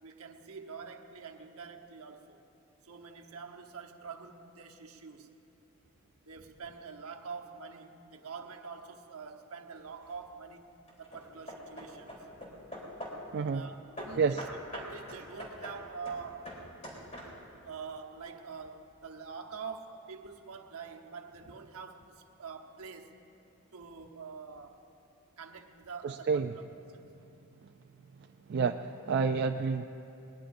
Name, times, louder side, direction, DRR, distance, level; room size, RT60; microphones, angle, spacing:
voice 1, 0.0-2.4 2.8-5.3 6.2-10.7 11.0-12.1 13.5-14.5 14.7-16.6 17.6-23.2 23.7-24.9 25.4-27.1, right 5 dB, 70° right, 3 dB, 1.0 m, -45 dB
Hammer / Wood, 9.8-10.2 10.9-13.3 14.0-17.6, equal, 30° left, 3.3 m, -44 dB
voice 2, 13.3-13.6 14.2-14.5 26.0-26.6 28.2-29.8, right 5 dB, 50° right, 5 dB, 0.3 m, -30 dB
21.5 x 20.0 x 2.6 m, 2.9 s
head